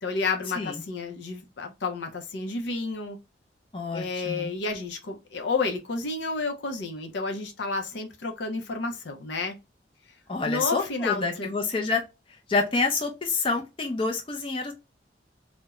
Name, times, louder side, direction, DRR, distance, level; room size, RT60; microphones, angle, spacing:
voice 1, 0.0-3.2 3.9-9.5 10.4-11.5, left 3 dB, 75° left, 0.5 m, -31 dB
voice 2, 3.7-4.5 10.3-12.0 12.5-14.7, left 3 dB, 30° left, 0.5 m, -28 dB
2.3 x 2.1 x 2.8 m
head